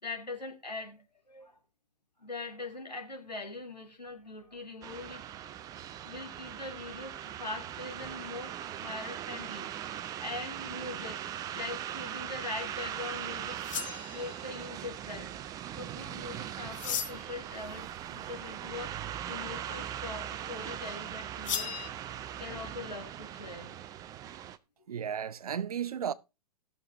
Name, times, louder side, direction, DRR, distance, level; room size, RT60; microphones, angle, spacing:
voice 1, 0.0-1.5 2.2-5.5 6.0-9.7 10.2-11.2 11.5-13.6 14.1-15.3 15.8-18.9 19.3-21.7 22.4-23.8, left 3 dB, 85° left, 2.8 m, -42 dB
sound 1, 4.8-24.6, right 11 dB, 20° right, 0.5 m, -40 dB
sound 2, 13.6-14.5 16.7-17.4 21.4-21.9, left 8 dB, 50° left, 1.6 m, -36 dB
voice 2, 24.9-26.1, right 8 dB, 65° right, 0.7 m, -34 dB
18.5 x 6.8 x 2.8 m
figure-of-eight pair, 110°, 21 cm